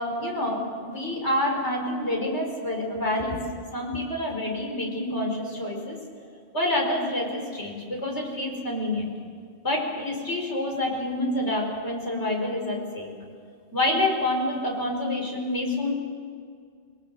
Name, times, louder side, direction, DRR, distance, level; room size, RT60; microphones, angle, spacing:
voice 1, 0.0-3.4 3.7-6.0 6.5-9.1 9.6-13.1 13.7-15.9, left 1 dB, 75° left, 0 dB, 5.3 m, -27 dB
28.5 x 21.0 x 6.8 m, 2.1 s
omnidirectional pair, 1.1 m